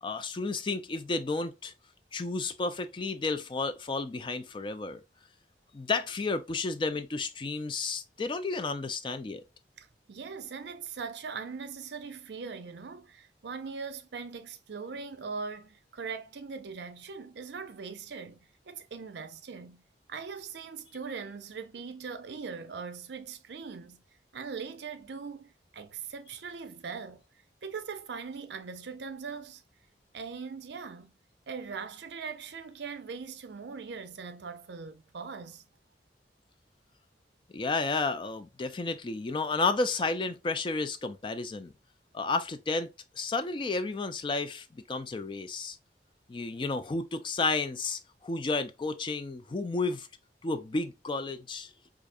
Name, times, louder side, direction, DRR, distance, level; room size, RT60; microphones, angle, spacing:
voice 1, 0.0-1.7 2.1-5.0 5.7-9.4 37.5-41.7 42.1-42.9 43.2-45.8 46.3-50.1 50.4-51.7, left 3 dB, 25° left, 0.3 m, -32 dB
voice 2, 9.8-18.4 18.7-19.8 20.1-24.0 24.3-27.2 27.6-29.6 30.1-31.1 31.5-35.6, right 5 dB, 75° right, 0.5 m, -40 dB
4.7 x 2.4 x 2.5 m
head